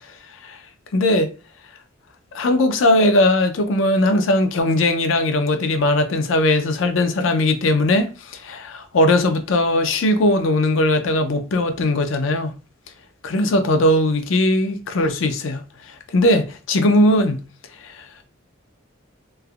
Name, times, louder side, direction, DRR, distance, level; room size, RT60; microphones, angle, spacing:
voice 1, 0.9-1.3 2.3-12.6 13.2-15.6 16.1-17.4 17.8-18.0, left 1 dB, 75° left, 0.5 m, -19 dB
3.2 x 2.1 x 2.3 m
head